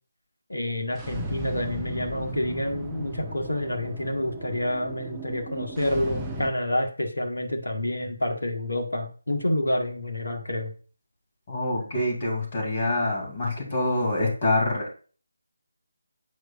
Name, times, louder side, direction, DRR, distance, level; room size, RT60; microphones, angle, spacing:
voice 1, 0.5-10.7, left 1 dB, 70° left, 3 dB, 1.4 m, -28 dB
sound 1, 0.9-6.5, right 2 dB, 10° right, 0.7 m, -36 dB
voice 2, 11.5-14.9, left 2 dB, 35° left, -1 dB, 2.8 m, -26 dB
8.7 x 4.7 x 2.5 m, 0.40 s
figure-of-eight pair, 155°, 0 cm